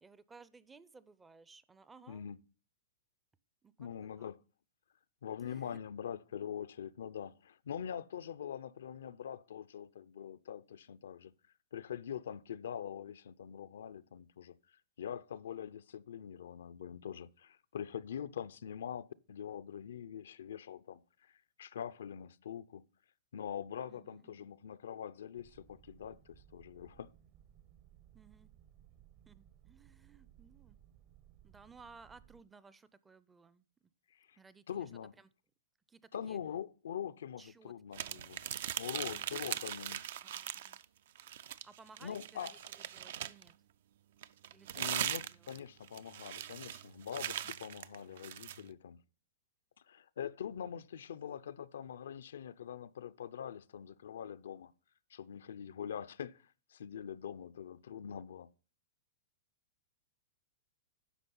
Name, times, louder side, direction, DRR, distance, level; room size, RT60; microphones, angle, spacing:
voice 1, 0.0-2.2 3.6-3.9 4.2-4.3 5.4-5.8 23.9-24.5 28.1-28.5 29.3-30.8 31.4-33.6 34.4-34.9 35.2-35.3 35.9-36.4 37.4-37.7 38.0-38.3 38.9-39.6 40.2-40.8 41.4-43.5 44.5-45.6, right 4 dB, 10° right, 0.4 m, -59 dB
voice 2, 2.1-2.4 3.8-4.4 5.2-11.3 11.7-14.6 15.0-21.3 21.6-22.8 23.3-27.1 34.3-34.4 34.7-35.1 36.1-38.5 38.8-40.0 42.0-42.5 44.7-49.0 49.9-54.7 55.1-56.4 56.7-58.5, left 8 dB, 85° left, 0.5 m, -44 dB
sound 1, 25.3-32.4, right 11 dB, 40° right, 0.7 m, -62 dB
sound 2, 37.9-40.8 41.2-43.5 44.2-48.6, right 11 dB, 65° right, 0.4 m, -40 dB
10.0 x 6.1 x 5.4 m
hypercardioid pair, 140°, 0 cm